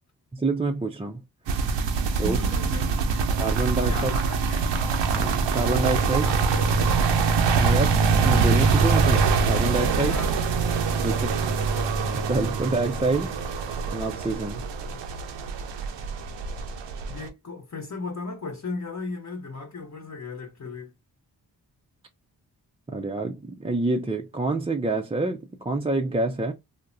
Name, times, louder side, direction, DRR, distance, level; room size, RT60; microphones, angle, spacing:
voice 1, 0.3-1.2 2.2-2.4 3.4-4.1 5.1-6.3 7.6-10.2 11.0-11.6 12.1-13.4 13.9-14.6 22.9-26.5, right 2 dB, 15° right, 0.5 m, -27 dB
sound 1, 1.5-17.3, right 5 dB, 80° right, 0.7 m, -24 dB
voice 2, 2.2-2.9 3.4-3.6 3.9-4.6 6.0-6.8 10.0-10.5 11.0-11.2 17.1-20.9, left 3 dB, 40° left, 1.0 m, -36 dB
3.5 x 2.1 x 2.5 m
supercardioid pair, 40°, 43 cm